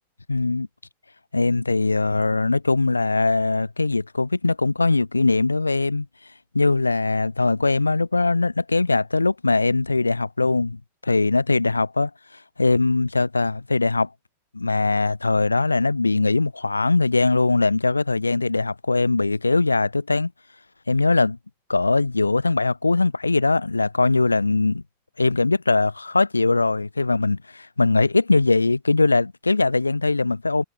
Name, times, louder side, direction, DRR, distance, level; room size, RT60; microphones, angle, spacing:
voice 1, 0.3-0.7 1.3-6.1 6.5-12.1 12.6-14.1 14.5-20.3 20.9-21.4 21.7-24.8 25.2-30.6, left 3 dB, 80° left, 4.6 m, -21 dB
figure-of-eight pair, 90°, 0 cm